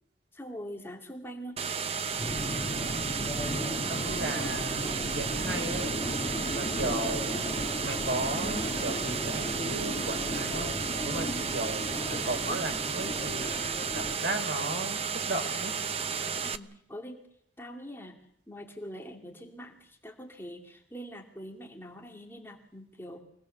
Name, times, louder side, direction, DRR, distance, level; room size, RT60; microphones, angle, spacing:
voice 1, 0.3-1.7 16.4-17.2 17.6-18.2 18.5-23.2, equal, 15° left, 0 dB, 2.5 m, -43 dB
sound 1, 1.6-16.6, right 6 dB, 35° right, 0.8 m, -33 dB
Subway metro underground, 2.2-14.1, left 1 dB, 30° left, 2.6 m, -36 dB
voice 2, 3.4-5.9 6.5-7.3 7.8-11.3 11.5-13.6 13.9-15.0 15.3-15.7, right 2 dB, 70° right, 4 dB, 3.9 m, -35 dB
25.0 x 18.5 x 6.9 m, 0.72 s
head